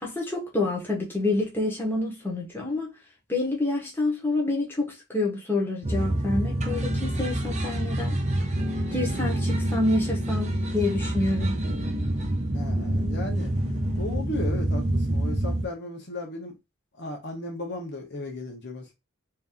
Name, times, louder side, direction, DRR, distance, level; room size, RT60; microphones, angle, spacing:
voice 1, 0.0-2.9 3.3-8.2 8.9-11.5, left 2 dB, 10° left, 1.0 m, -28 dB
sound 1, 5.8-15.7, right 1 dB, 30° right, 0.6 m, -27 dB
voice 2, 12.5-13.5 14.0-16.6 17.0-18.9, left 2 dB, 50° left, 0.8 m, -35 dB
2.8 x 2.6 x 3.6 m
head